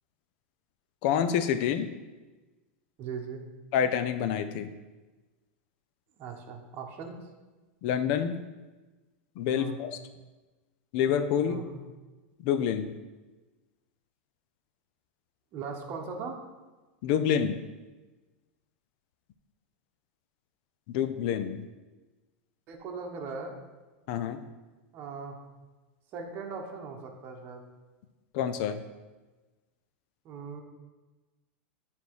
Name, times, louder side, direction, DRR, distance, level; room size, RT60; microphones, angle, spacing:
voice 1, 1.0-1.9 3.7-4.7 7.8-8.4 9.4-10.0 10.9-11.6 12.4-12.9 17.0-17.6 20.9-21.6 24.1-24.4 28.3-28.8, left 8 dB, 55° left, 10 dB, 0.6 m, -27 dB
voice 2, 3.0-3.4 6.2-7.2 9.5-9.8 11.5-11.8 15.5-16.4 22.7-23.5 24.9-25.4 26.1-27.6 30.2-30.6, right 5 dB, 35° right, 1 dB, 1.1 m, -39 dB
9.4 x 3.5 x 4.7 m, 1.2 s
supercardioid pair, 145°, 6 cm